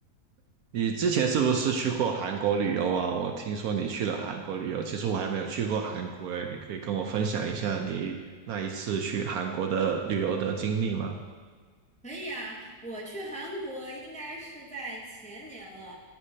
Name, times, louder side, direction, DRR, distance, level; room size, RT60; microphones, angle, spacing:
voice 1, 0.7-8.2 8.5-11.2, right 6 dB, 70° right, 3 dB, 1.0 m, -29 dB
voice 2, 12.0-16.0, right 1 dB, 5° left, -4 dB, 0.8 m, -39 dB
9.5 x 8.0 x 2.8 m, 1.5 s
omnidirectional pair, 1.8 m